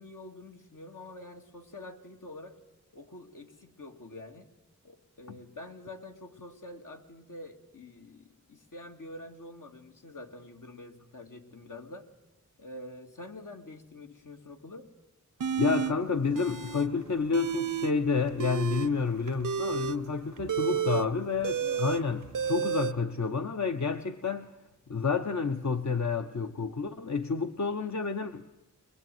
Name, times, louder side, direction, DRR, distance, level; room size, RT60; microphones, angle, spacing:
voice 1, 0.0-2.6 2.9-4.5 4.8-12.1 12.6-14.9 20.7-21.1 21.6-21.9, left 2 dB, 80° left, 3 dB, 2.5 m, -46 dB
sound 1, 15.4-15.9 16.3-16.9 17.2-17.9 18.3-22.9, right 8 dB, 90° right, 0.9 m, -31 dB
voice 2, 15.6-24.5 24.9-28.4, left 5 dB, 65° left, 7 dB, 1.0 m, -29 dB
22.5 x 21.0 x 9.3 m, 0.97 s
wide cardioid pair, 70°, 31 cm